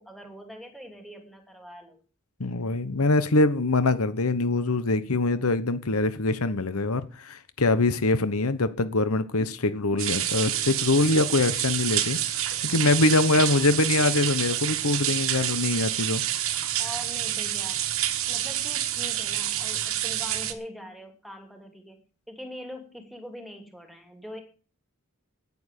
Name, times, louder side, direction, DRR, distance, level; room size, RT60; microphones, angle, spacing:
voice 1, 0.0-2.0 13.3-13.7 16.8-18.0 18.3-22.0 22.3-24.4, equal, ahead, 2.6 m, -43 dB
voice 2, 2.4-16.2, left 2 dB, 70° left, 1.1 m, -24 dB
sound 1, 10.0-20.5, right 11 dB, 65° right, 1.4 m, -28 dB
9.7 x 9.5 x 8.3 m
head